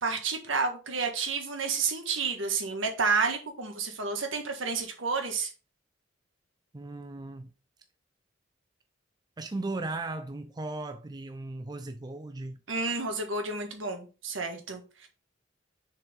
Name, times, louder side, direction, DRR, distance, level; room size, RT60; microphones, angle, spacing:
voice 1, 0.0-5.5 12.7-15.1, right 4 dB, 75° right, 1.6 m, -30 dB
voice 2, 6.7-7.5 9.4-12.6, right 2 dB, 20° right, 0.4 m, -37 dB
6.7 x 4.6 x 3.6 m
head